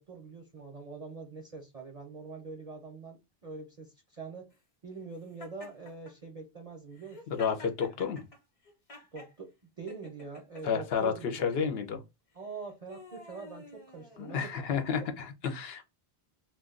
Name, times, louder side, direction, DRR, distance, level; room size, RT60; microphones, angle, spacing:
voice 1, 0.0-4.6 4.8-7.2 9.1-9.5 9.8-11.7 12.3-15.1, right 4 dB, 45° right, 0.6 m, -44 dB
Laughter, 5.4-6.1 6.9-9.3 9.9-10.6 11.4-11.7 12.4-14.6, left 1 dB, 35° left, 0.8 m, -50 dB
voice 2, 7.3-8.2 10.6-12.0 14.2-15.9, left 6 dB, 75° left, 0.9 m, -31 dB
2.3 x 2.2 x 3.6 m
omnidirectional pair, 1.0 m